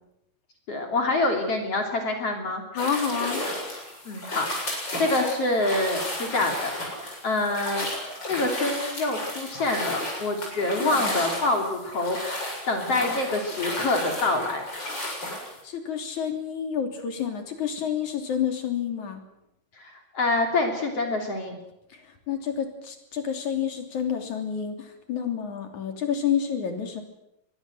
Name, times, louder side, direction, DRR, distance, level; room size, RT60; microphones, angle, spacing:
voice 1, 0.7-2.6 4.1-6.7 7.0-7.9 8.3-14.7 19.8-21.6, left 2 dB, 45° left, 3 dB, 3.8 m, -26 dB
voice 2, 2.7-3.4 15.6-19.2 21.9-22.0 22.3-27.0, left 8 dB, 65° left, 5 dB, 4.5 m, -29 dB
sound 1, 2.8-15.6, left 1 dB, 30° left, 7.9 m, -33 dB
23.5 x 22.0 x 7.9 m, 0.86 s
omnidirectional pair, 3.8 m